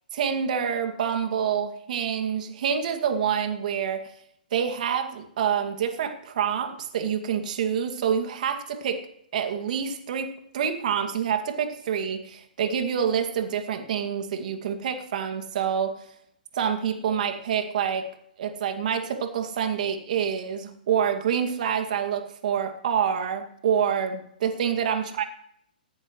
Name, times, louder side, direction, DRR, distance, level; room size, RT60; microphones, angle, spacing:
voice 1, 0.1-4.0 4.5-9.0 9.3-15.9 16.5-18.1 18.4-25.3, right 8 dB, 55° right, 6 dB, 2.2 m, -27 dB
19.5 x 14.5 x 3.2 m, 0.70 s
hypercardioid pair, 130°, 5 cm